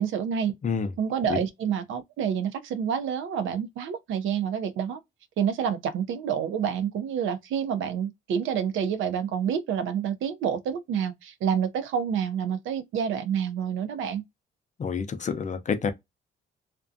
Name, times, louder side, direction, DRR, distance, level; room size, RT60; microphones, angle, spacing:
voice 1, 0.0-0.6 1.0-5.0 5.4-14.2, right 8 dB, 80° right, 0.6 m, -28 dB
voice 2, 14.8-15.9, left 6 dB, 40° left, 0.5 m, -28 dB
2.5 x 2.2 x 2.5 m
cardioid pair, 90°, 20 cm